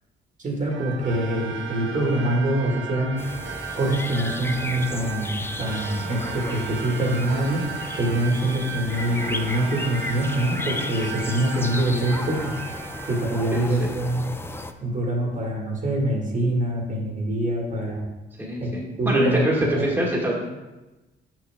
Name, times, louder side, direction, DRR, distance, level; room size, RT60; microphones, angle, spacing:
voice 1, 0.4-3.2 3.8-7.6 8.0-12.5 13.1-14.3 14.8-18.1 18.6-18.7 19.0-19.4 19.8-19.9, right 1 dB, 40° right, -1 dB, 1.8 m, -24 dB
sound 1, 0.7-14.5, right 6 dB, 75° right, 0.7 m, -36 dB
sound 2, 3.2-14.7, left 2 dB, 10° left, 0.4 m, -35 dB
voice 2, 13.5-13.9 18.4-20.3, equal, 10° right, -3 dB, 1.7 m, -24 dB
6.0 x 5.8 x 3.5 m, 1.1 s
cardioid pair, 90°, 20 cm